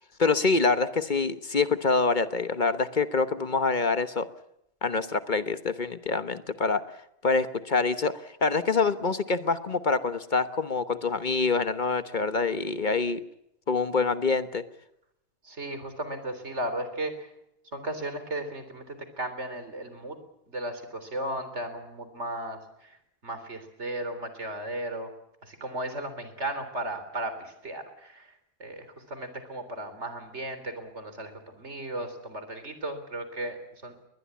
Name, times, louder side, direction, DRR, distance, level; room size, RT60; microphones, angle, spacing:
voice 1, 0.2-4.3 4.8-6.8 7.2-13.2 13.7-14.6, left 4 dB, 45° left, 12 dB, 1.2 m, -26 dB
voice 2, 15.4-17.3 17.7-20.2 20.5-23.0 23.2-25.1 25.4-28.3 28.6-33.6 33.8-33.9, right 1 dB, 80° right, 10 dB, 4.0 m, -35 dB
21.5 x 21.0 x 8.5 m, 0.79 s
omnidirectional pair, 1.2 m